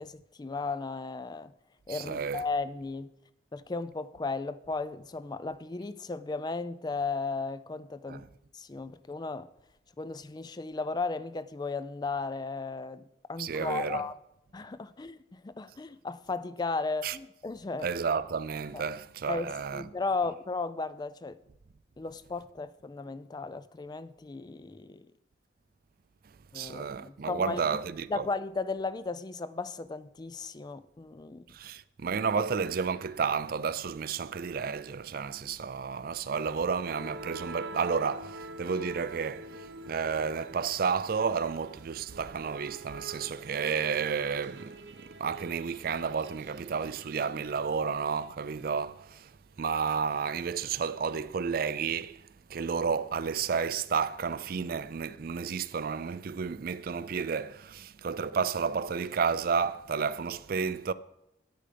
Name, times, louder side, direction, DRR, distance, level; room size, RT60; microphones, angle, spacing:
voice 1, 0.0-1.5 1.9-3.1 3.5-8.2 8.5-9.5 10.0-13.0 13.3-14.2 14.5-17.9 18.7-18.8 19.3-21.4 22.0-25.1 26.5-27.6 28.1-31.4 32.4-32.5, left 3 dB, 25° left, 0.4 m, -35 dB
voice 2, 1.9-2.4 8.1-8.2 13.4-14.0 17.0-17.2 17.8-19.9 26.5-28.3 31.5-39.5 39.8-49.3 49.6-52.2 52.5-60.9, right 6 dB, 55° right, 0.4 m, -31 dB
sound 1, 36.4-48.3, right 2 dB, 90° right, 0.9 m, -46 dB
10.5 x 9.0 x 5.1 m
head